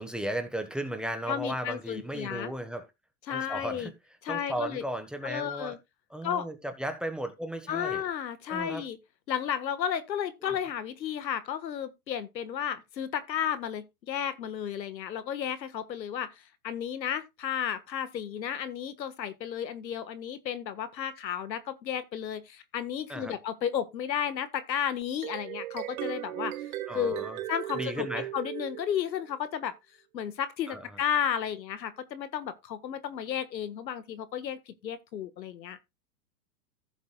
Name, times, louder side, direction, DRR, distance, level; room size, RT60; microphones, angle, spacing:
voice 1, 0.0-2.9 3.3-3.9 4.3-5.8 6.1-8.0 8.5-8.8 10.4-10.5 23.1-23.3 26.9-27.4 27.7-28.3 30.7-31.0, right 1 dB, ahead, 1.3 m, -35 dB
voice 2, 1.3-2.5 3.3-3.9 4.2-4.8 5.2-5.8 6.2-6.5 7.7-9.0 9.3-16.3 16.6-26.6 26.9-29.7 30.1-35.8, left 9 dB, 85° left, 1.6 m, -33 dB
sound 1, 25.0-29.4, right 14 dB, 55° right, 1.2 m, -37 dB
15.0 x 7.4 x 2.3 m
hypercardioid pair, 135°, 50 cm